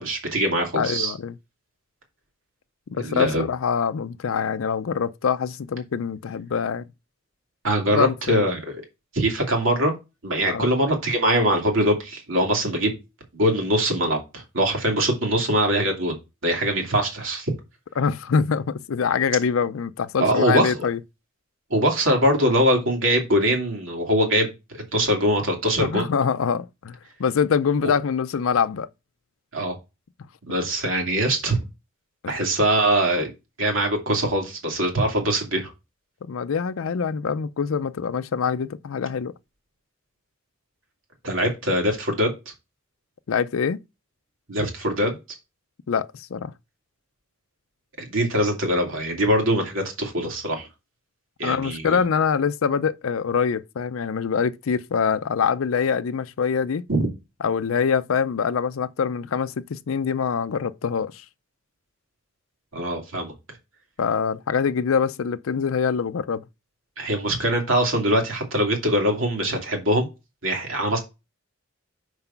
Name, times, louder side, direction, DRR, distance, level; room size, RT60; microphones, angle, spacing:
voice 1, 0.0-1.1 3.0-3.4 7.6-8.6 9.1-10.0 10.2-12.9 13.3-16.1 16.4-17.5 20.2-20.7 21.7-26.1 27.8-27.9 29.5-29.8 30.5-31.6 32.3-33.3 33.6-35.7 41.2-42.3 44.5-45.2 48.0-50.7 51.4-52.0 56.9-57.1 62.7-63.3 67.0-70.1 70.4-71.0, equal, 70° right, 2.6 m, -22 dB
voice 2, 0.8-1.3 2.9-6.9 7.9-8.4 10.5-10.7 18.0-21.0 25.8-28.9 32.2-32.3 36.3-39.3 43.3-43.8 45.9-46.5 51.4-56.8 57.4-61.2 64.0-66.4, left 6 dB, 80° left, 0.5 m, -24 dB
5.8 x 4.8 x 5.6 m
head